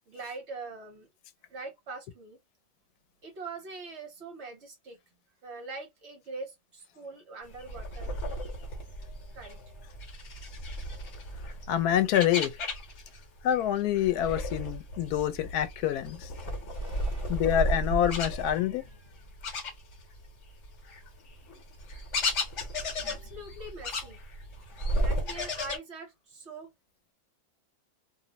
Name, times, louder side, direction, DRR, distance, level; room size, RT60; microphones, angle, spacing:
voice 1, 0.1-1.1 1.5-2.4 3.2-5.0 5.4-8.1 9.3-9.6 16.7-17.4 23.0-24.2 25.0-26.7, right 3 dB, 55° right, 0.9 m, -43 dB
sound 1, 7.5-13.2 13.5-20.3 20.6-25.8, equal, 55° left, 1.1 m, -34 dB
voice 2, 11.4-12.6 13.4-16.3 17.3-18.8, left 11 dB, 90° left, 1.1 m, -27 dB
2.6 x 2.0 x 2.8 m
omnidirectional pair, 1.6 m